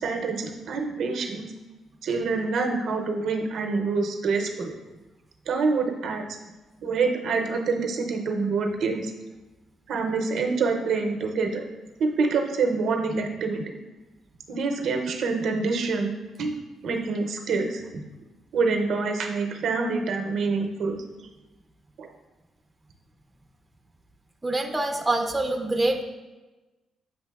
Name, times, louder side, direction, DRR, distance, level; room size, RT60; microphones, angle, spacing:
voice 1, 0.0-1.5 2.0-4.7 5.5-6.2 6.8-9.1 9.9-11.6 12.0-13.6 14.5-18.0 18.5-21.0 22.0-22.1, right 4 dB, 70° right, 3 dB, 0.6 m, -26 dB
voice 2, 24.4-26.0, right 2 dB, 15° right, 3 dB, 0.4 m, -25 dB
8.1 x 2.8 x 2.3 m, 1.1 s
cardioid pair, 90°, 0 cm